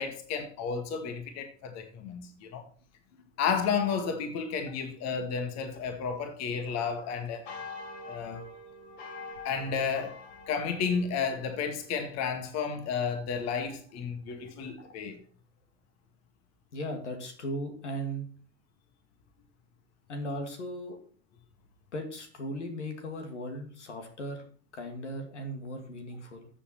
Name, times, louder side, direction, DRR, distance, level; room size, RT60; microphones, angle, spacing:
voice 1, 0.0-2.6 3.4-7.4 8.1-8.4 9.4-10.2 10.5-15.2, left 6 dB, 50° left, 2.1 m, -32 dB
sound 1, 6.5-12.3, left 2 dB, 65° left, 2.8 m, -46 dB
voice 2, 16.7-18.3 20.1-21.0 21.9-24.4 24.7-26.5, equal, 80° left, 2.5 m, -37 dB
13.5 x 7.5 x 4.5 m
hypercardioid pair, 80°, 35 cm